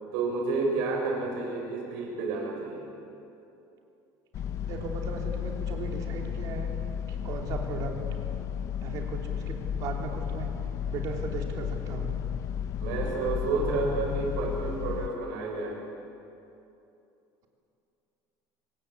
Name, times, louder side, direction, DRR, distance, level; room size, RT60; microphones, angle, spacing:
voice 1, 0.1-2.8 12.8-15.8, right 3 dB, 70° right, 1 dB, 6.7 m, -30 dB
sound 1, 4.3-15.1, left 8 dB, 35° left, 0.7 m, -33 dB
voice 2, 4.6-6.7 7.1-7.9 8.8-10.5 10.8-12.2, right 4 dB, 45° right, 2 dB, 3.2 m, -37 dB
25.5 x 20.0 x 8.4 m, 2.8 s
cardioid pair, 180°, 9 cm